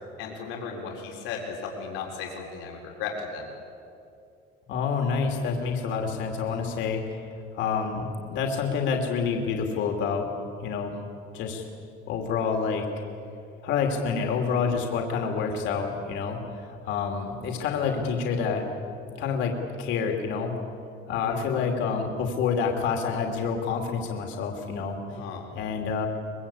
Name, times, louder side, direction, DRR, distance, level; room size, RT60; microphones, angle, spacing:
voice 1, 0.2-3.5 21.1-21.4 25.1-25.5, left 5 dB, 90° left, 0 dB, 4.4 m, -36 dB
voice 2, 4.7-7.2 7.5-10.3 10.6-10.9 11.3-11.6 12.1-12.9 13.6-18.6 19.1-20.5 21.1-25.0 25.5-26.1, left 5 dB, 60° left, 2 dB, 2.8 m, -28 dB
24.0 x 22.5 x 8.6 m, 2.6 s
cardioid pair, 180°, 21 cm